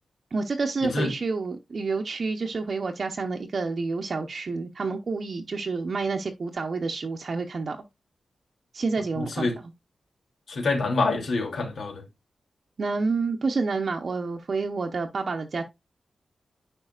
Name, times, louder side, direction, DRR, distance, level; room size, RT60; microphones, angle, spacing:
voice 1, 0.3-7.8 8.7-9.7 12.8-15.6, right 4 dB, 50° right, 0.9 m, -29 dB
voice 2, 9.2-9.5 10.5-12.0, left 3 dB, 70° left, 2.7 m, -26 dB
9.9 x 5.3 x 2.4 m
wide cardioid pair, 115°, 0 cm